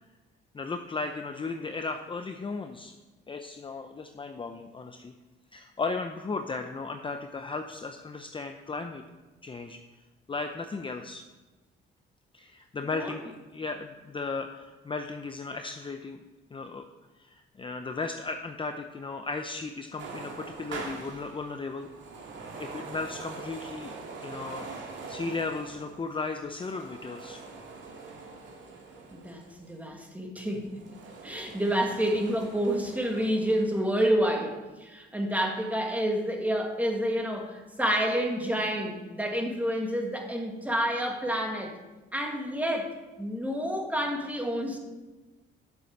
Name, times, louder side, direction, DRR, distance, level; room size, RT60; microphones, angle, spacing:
voice 1, 0.5-2.9 3.3-5.1 5.5-9.0 9.4-9.8 10.3-11.2 12.3-16.2 16.5-16.9 17.2-21.9 22.4-24.0 24.2-24.7 25.1-27.4, left 3 dB, 25° left, 6 dB, 0.7 m, -35 dB
sound 1, 20.0-29.8 30.4-33.8, right 4 dB, 70° right, 2.1 m, -43 dB
voice 2, 29.1-30.8 31.2-41.7 42.1-42.9 43.2-44.8, equal, 5° right, 2 dB, 2.0 m, -29 dB
8.2 x 7.0 x 6.6 m, 1.2 s
cardioid pair, 90°, 20 cm